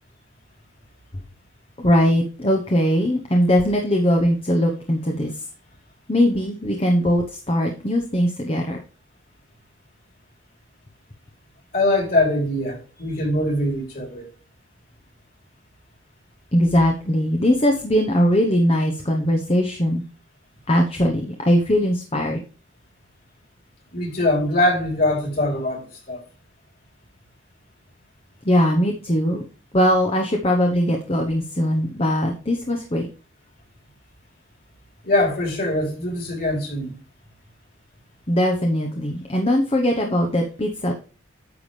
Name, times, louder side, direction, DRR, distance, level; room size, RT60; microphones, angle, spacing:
voice 1, 1.8-5.4 6.1-8.8 16.5-20.0 20.7-22.4 28.4-29.4 29.7-33.1 38.3-40.9, equal, 30° left, 1.0 m, -20 dB
voice 2, 11.7-14.3 23.9-26.2 35.0-37.0, left 1 dB, 45° left, 3.5 m, -22 dB
9.5 x 7.0 x 3.3 m
head